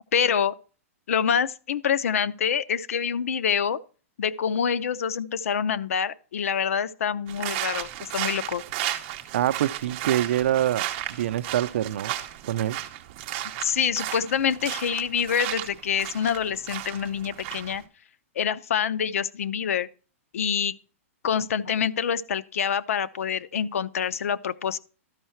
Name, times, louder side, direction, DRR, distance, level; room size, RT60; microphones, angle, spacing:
voice 1, 0.1-0.5 1.1-3.8 4.2-8.6 13.6-17.8 18.4-19.9 20.3-20.7 21.2-24.8, left 7 dB, 80° left, 0.6 m, -26 dB
sound 1, 7.3-17.8, right 13 dB, 30° right, 0.8 m, -34 dB
voice 2, 9.3-12.1 12.5-12.8, right 12 dB, 55° right, 0.5 m, -25 dB
12.5 x 5.5 x 4.5 m
hypercardioid pair, 170°, 8 cm